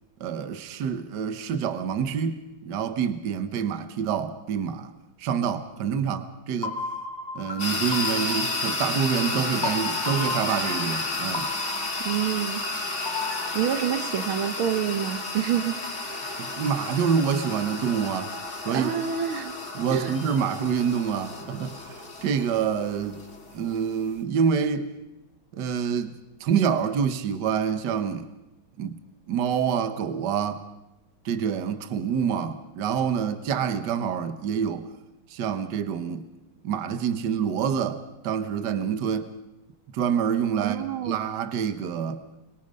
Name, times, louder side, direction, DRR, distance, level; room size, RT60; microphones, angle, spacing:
voice 1, 0.2-4.9 5.2-6.8 7.3-11.5 16.4-18.3 18.6-18.9 19.7-21.8 22.2-23.2 23.5-24.9 25.5-26.1 26.4-28.3 28.8-29.0 29.3-30.6 31.2-34.9 35.3-36.2 36.6-39.3 39.9-42.2, right 7 dB, 60° right, 1.6 m, -27 dB
sound 1, 6.6-13.5, left 3 dB, 10° left, 2.5 m, -35 dB
sound 2, 7.6-24.2, left 2 dB, 35° left, 2.7 m, -32 dB
voice 2, 12.1-12.6 13.5-15.8 18.7-19.5 19.9-20.2 40.6-41.2, right 9 dB, 80° right, 1.9 m, -27 dB
25.5 x 21.5 x 5.4 m
omnidirectional pair, 2.3 m